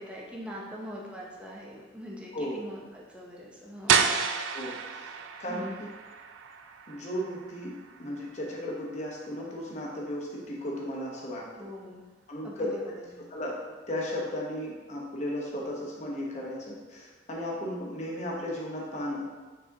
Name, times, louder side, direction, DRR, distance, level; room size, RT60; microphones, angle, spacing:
voice 1, 0.0-4.0 5.4-5.8 11.6-12.0 12.4-12.8 13.1-13.2, equal, 5° right, -4 dB, 0.6 m, -42 dB
sound 1, 3.9-9.5, right 7 dB, 80° right, 0.3 m, -31 dB
voice 2, 4.5-5.1 5.4-5.7 6.9-11.4 12.3-12.7 13.3-13.6 13.9-19.2, left 1 dB, 35° left, -3 dB, 0.8 m, -35 dB
4.5 x 4.2 x 2.7 m, 1.3 s
head